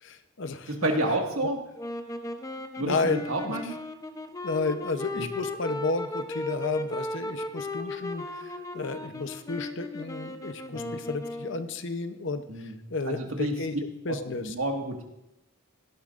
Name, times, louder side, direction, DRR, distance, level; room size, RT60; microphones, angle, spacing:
voice 1, 0.0-0.7 1.4-1.5 2.8-3.7 4.4-13.7 14.0-14.5, left 3 dB, 60° left, 9 dB, 0.7 m, -32 dB
voice 2, 0.8-1.6 2.8-3.7 5.2-5.3 10.7-10.9 12.5-12.7 13.1-13.5 14.1-14.2 14.4-15.0, right 1 dB, 80° right, 2 dB, 1.8 m, -29 dB
sound 1, 1.8-11.7, left 2 dB, 15° left, 0.6 m, -36 dB
17.0 x 12.0 x 2.5 m, 0.87 s
head